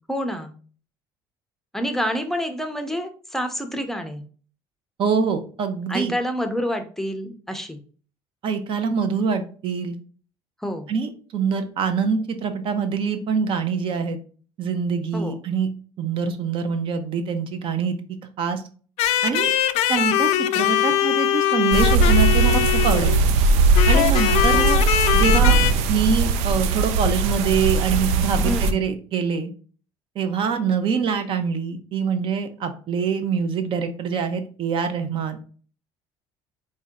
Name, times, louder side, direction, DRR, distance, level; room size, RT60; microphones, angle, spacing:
voice 1, 0.1-0.6 1.7-4.2 5.9-7.8 10.6-10.9 15.1-15.3 24.1-24.7 28.4-28.8, equal, 5° left, 6 dB, 0.6 m, -28 dB
voice 2, 5.0-6.1 8.4-9.9 10.9-14.2 14.6-15.7 16.0-18.0 18.4-18.6 19.2-19.5 19.9-23.2 23.9-24.8 25.1-25.6 25.9-29.5 30.1-35.4, right 6 dB, 55° right, 8 dB, 0.8 m, -24 dB
sound 1, 19.0-23.2 23.7-25.7, left 12 dB, 75° left, 0.4 m, -21 dB
sound 2, 21.7-28.7, right 3 dB, 85° right, 0.5 m, -19 dB
4.3 x 2.7 x 3.6 m, 0.41 s
cardioid pair, 105°, 11 cm